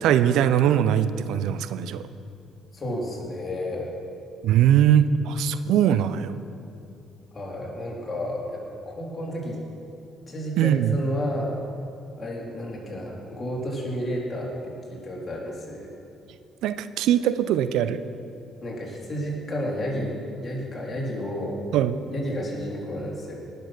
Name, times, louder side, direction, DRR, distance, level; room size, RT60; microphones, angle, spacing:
voice 1, 0.0-2.0 4.4-6.4 10.6-11.0 16.6-18.0 21.7-22.0, right 10 dB, 65° right, 13 dB, 0.5 m, -21 dB
voice 2, 2.7-3.9 7.3-9.6 10.3-11.6 12.2-15.9 18.6-21.7 22.1-23.3, equal, 35° left, -3 dB, 3.7 m, -31 dB
18.5 x 6.8 x 6.1 m, 2.6 s
hypercardioid pair, 50°, 0 cm